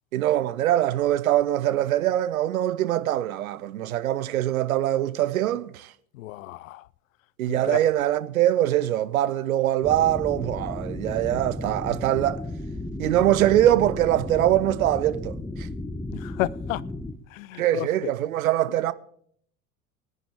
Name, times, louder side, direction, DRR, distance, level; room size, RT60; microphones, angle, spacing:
voice 1, 0.1-5.9 7.4-12.4 13.0-15.7 17.6-18.9, right 13 dB, 70° right, 0.6 m, -23 dB
voice 2, 6.1-6.9 7.5-7.8 16.1-16.8 17.3-18.1, left 16 dB, 65° left, 0.5 m, -32 dB
sound 1, 9.8-17.1, left 1 dB, 5° left, 1.0 m, -34 dB
21.5 x 10.0 x 3.6 m
figure-of-eight pair, 65°, 43 cm